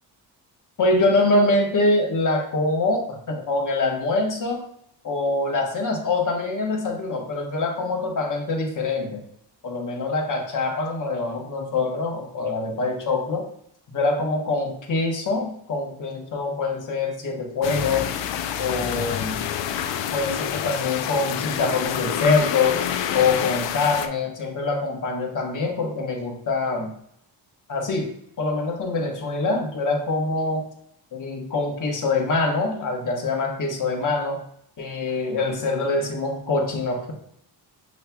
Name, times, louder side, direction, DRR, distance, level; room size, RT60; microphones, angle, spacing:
voice 1, 0.8-4.6 5.0-9.2 9.6-13.5 13.9-18.1 18.6-19.4 20.1-22.8 23.1-26.9 27.7-28.1 28.4-30.6 31.1-34.4 34.8-37.1, left 3 dB, 45° left, 1 dB, 1.1 m, -24 dB
sound 1, 17.6-24.1, left 9 dB, 85° left, 0.5 m, -28 dB
6.9 x 3.1 x 2.2 m, 0.70 s
cardioid pair, 120°, 43 cm